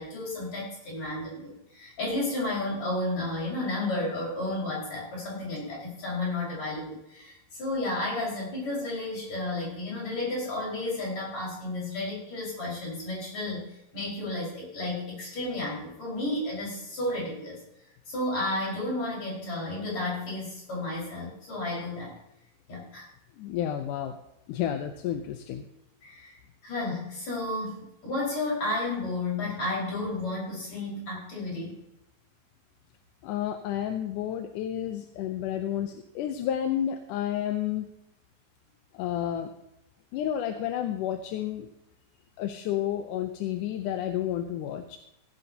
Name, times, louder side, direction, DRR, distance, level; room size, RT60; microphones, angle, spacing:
voice 1, 0.0-17.6 18.1-22.1 22.7-23.1 26.0-31.8, left 2 dB, 50° left, -4 dB, 6.4 m, -32 dB
voice 2, 23.4-24.2 24.5-25.7 33.2-37.9 38.9-39.5 40.1-41.7 42.4-45.0, left 10 dB, 75° left, 6 dB, 2.2 m, -31 dB
16.0 x 11.0 x 2.9 m, 0.82 s
omnidirectional pair, 4.0 m